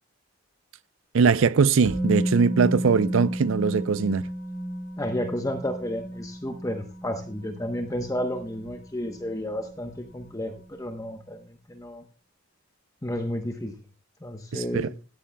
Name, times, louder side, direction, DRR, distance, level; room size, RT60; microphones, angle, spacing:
voice 1, 1.1-4.2 14.5-14.9, right 5 dB, 70° right, 0.5 m, -21 dB
Musical instrument, 1.8-9.7 10.0-10.2, right 1 dB, 60° left, 2.8 m, -33 dB
voice 2, 5.0-12.1 13.0-13.7 14.2-14.9, left 1 dB, 15° left, 0.9 m, -32 dB
16.5 x 12.5 x 2.3 m
head